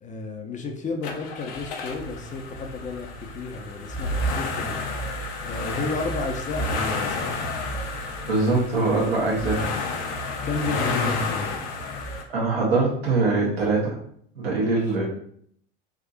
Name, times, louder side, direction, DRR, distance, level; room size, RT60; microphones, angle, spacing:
voice 1, 0.0-5.1 5.4-7.5 10.4-11.6, left 3 dB, 25° left, 4 dB, 0.5 m, -33 dB
sound 1, 1.0-12.2, left 2 dB, 60° left, 0.7 m, -30 dB
voice 2, 8.3-9.6 11.9-12.0 12.3-14.0 14.3-15.1, right 3 dB, 85° right, -4 dB, 1.4 m, -23 dB
3.6 x 2.6 x 2.5 m, 0.63 s
hypercardioid pair, 80°, 30 cm